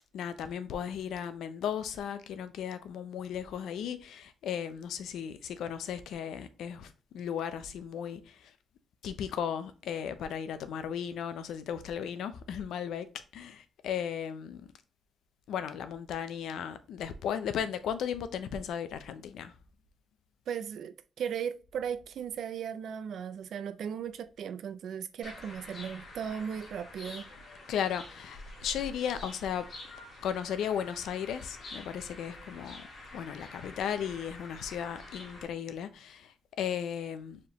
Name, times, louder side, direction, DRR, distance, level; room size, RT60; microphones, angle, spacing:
voice 1, 0.1-8.5 9.0-13.1 13.3-14.6 15.5-19.5 27.7-29.7 30.2-32.8 33.1-37.4, left 8 dB, 90° left, 0.6 m, -36 dB
voice 2, 20.5-27.3, right 8 dB, 70° right, 0.4 m, -37 dB
sound 1, 25.2-35.5, left 2 dB, 55° left, 1.7 m, -47 dB
4.6 x 3.6 x 2.9 m
cardioid pair, 140°, 0 cm